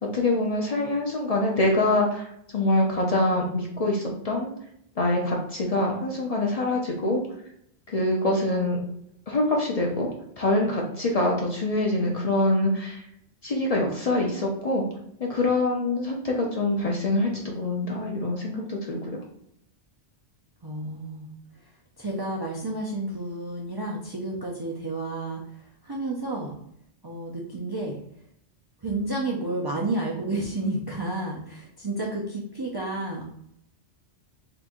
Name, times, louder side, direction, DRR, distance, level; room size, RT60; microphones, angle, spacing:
voice 1, 0.0-4.5 5.0-7.2 7.9-8.8 9.3-10.1 10.4-13.1 13.4-14.9 15.2-19.2, left 2 dB, 45° left, -1 dB, 0.6 m, -25 dB
voice 2, 20.6-21.3 22.0-25.4 25.8-26.5 27.0-28.0 28.8-33.3, right 2 dB, 40° right, -3 dB, 0.3 m, -31 dB
2.8 x 2.5 x 3.6 m, 0.72 s
omnidirectional pair, 1.1 m